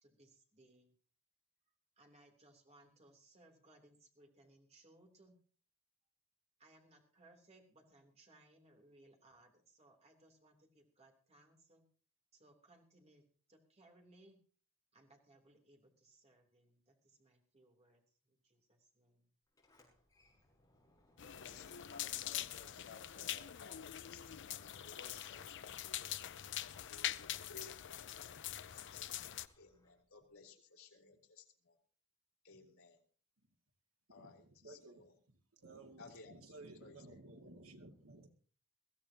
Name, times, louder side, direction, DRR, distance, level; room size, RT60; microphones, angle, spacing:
voice 1, 0.0-0.9 2.0-5.4 6.6-11.8 12.3-14.4 14.9-19.3, right 2 dB, 30° right, 2 dB, 3.2 m, -66 dB
Sliding door, 19.5-23.7 24.0-30.4, left 1 dB, 15° left, 6.2 m, -72 dB
voice 2, 21.2-26.3 26.6-29.0 29.6-31.8 32.4-33.0 34.1-35.2 36.0-37.5, left 4 dB, 80° left, -1 dB, 3.3 m, -59 dB
sound 1, 21.2-29.5, left 12 dB, 55° left, 0.6 m, -44 dB
voice 3, 34.2-35.0 35.6-38.3, right 2 dB, 80° right, 3 dB, 2.3 m, -56 dB
22.0 x 15.5 x 2.9 m, 0.41 s
head